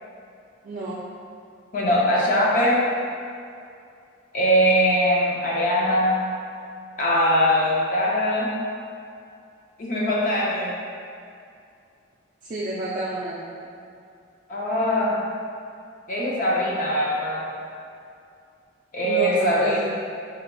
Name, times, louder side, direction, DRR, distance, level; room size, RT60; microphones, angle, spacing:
voice 1, 0.6-1.0 12.5-13.4 19.0-19.9, right 1 dB, 40° right, -7 dB, 0.4 m, -29 dB
voice 2, 1.7-2.9 4.3-6.2 7.0-8.5 9.8-10.7 14.5-15.2 16.1-17.4 18.9-19.8, equal, 40° left, -5 dB, 0.5 m, -21 dB
4.0 x 3.9 x 2.2 m, 2.5 s
head